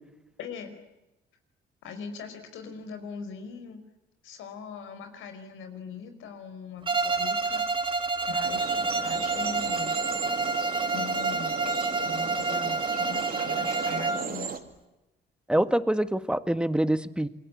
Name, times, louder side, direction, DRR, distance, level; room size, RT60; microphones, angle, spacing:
voice 1, 0.4-0.8 1.8-3.8 4.2-7.6 8.3-9.9 10.9-11.7 12.0-14.6, left 5 dB, 85° left, 8 dB, 5.0 m, -41 dB
Bowed string instrument, 6.9-14.3, right 3 dB, 25° right, 2.3 m, -28 dB
sound 1, 8.4-14.6, right 6 dB, 50° right, 2.6 m, -36 dB
voice 2, 15.5-17.3, right 1 dB, 5° right, 12 dB, 1.7 m, -25 dB
28.0 x 23.0 x 8.6 m, 0.98 s
cardioid pair, 90°, 20 cm